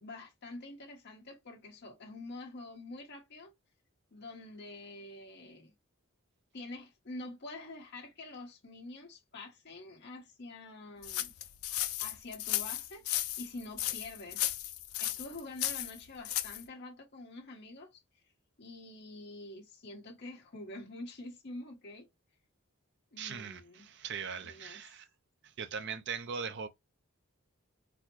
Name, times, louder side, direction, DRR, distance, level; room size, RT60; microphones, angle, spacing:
voice 1, 0.0-3.5 4.1-5.7 6.5-11.3 12.0-13.0 13.4-14.5 15.0-18.0 18.6-22.1 23.1-23.9 24.4-24.8, left 2 dB, 55° left, 1.2 m, -46 dB
sound 1, 11.0-16.6, left 13 dB, 80° left, 0.5 m, -35 dB
voice 2, 23.2-25.0 25.4-26.7, right 6 dB, 55° right, 0.5 m, -40 dB
3.9 x 2.1 x 3.0 m
head